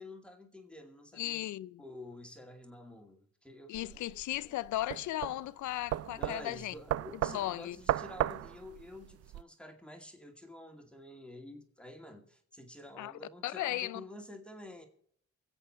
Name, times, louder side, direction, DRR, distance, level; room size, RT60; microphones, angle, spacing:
voice 1, 0.0-1.5 1.8-4.0 4.3-4.6 6.2-14.9, left 1 dB, 5° left, 2.2 m, -49 dB
voice 2, 1.2-1.8 3.7-6.7 7.2-7.8 13.0-13.1 13.4-14.0, left 15 dB, 75° left, 0.6 m, -36 dB
sound 1, 3.7-9.4, right 13 dB, 55° right, 0.4 m, -36 dB
23.5 x 8.1 x 4.3 m
cardioid pair, 90°, 30 cm